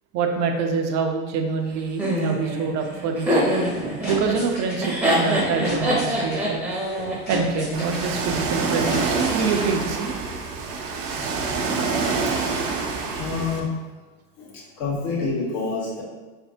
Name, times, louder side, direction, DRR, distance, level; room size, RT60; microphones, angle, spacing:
voice 1, 0.1-3.6 4.1-6.6 7.3-10.2, right 5 dB, 35° right, 3 dB, 0.6 m, -26 dB
Laughter, 2.0-8.1, right 1 dB, 5° right, 0.8 m, -24 dB
sound 1, 3.4-9.9, left 1 dB, 20° left, 1.0 m, -36 dB
Ocean, 7.7-13.6, right 4 dB, 85° right, 0.8 m, -26 dB
voice 2, 13.1-13.8 14.4-16.0, left 4 dB, 55° left, -5 dB, 1.4 m, -28 dB
3.9 x 3.3 x 2.8 m, 1.2 s
hypercardioid pair, 100°, 46 cm